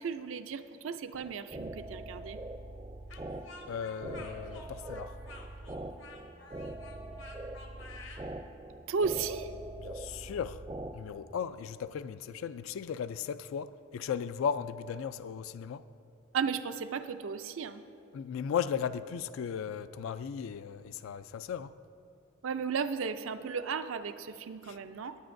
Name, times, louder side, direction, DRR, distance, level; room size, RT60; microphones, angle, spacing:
voice 1, 0.0-2.4 8.9-9.5 16.3-17.8 22.4-25.2, right 5 dB, 80° right, 0.4 m, -34 dB
sound 1, 1.1-10.9, right 2 dB, 20° right, 0.4 m, -43 dB
Speech, 3.1-8.3, left 3 dB, 70° left, 1.1 m, -50 dB
voice 2, 3.7-5.2 9.8-10.6 10.9-15.9 18.1-21.7 24.7-24.8, left 7 dB, 85° left, 0.3 m, -36 dB
18.5 x 8.8 x 2.6 m
head